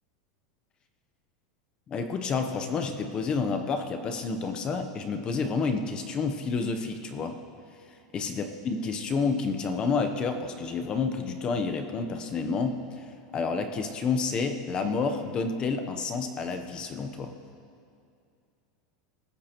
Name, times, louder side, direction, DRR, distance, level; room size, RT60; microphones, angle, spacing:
voice 1, 1.9-7.4 8.1-13.0 13.3-17.3, left 4 dB, 25° left, 7 dB, 0.8 m, -29 dB
26.0 x 15.0 x 3.0 m, 2.4 s
supercardioid pair, 165°, 4 cm